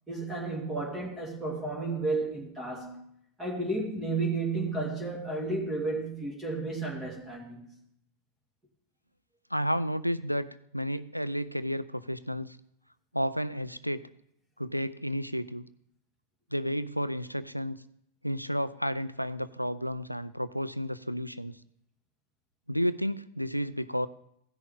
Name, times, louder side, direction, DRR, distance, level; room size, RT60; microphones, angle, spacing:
voice 1, 0.1-3.0 3.4-7.7, right 3 dB, 15° right, 2.6 m, -32 dB
voice 2, 9.5-10.5 10.7-12.6 13.1-14.0 14.6-15.7 16.5-17.8 18.2-21.6 22.7-24.1, equal, 90° left, 0.4 m, -31 dB
15.5 x 6.4 x 3.6 m
figure-of-eight pair, 90°, 0 cm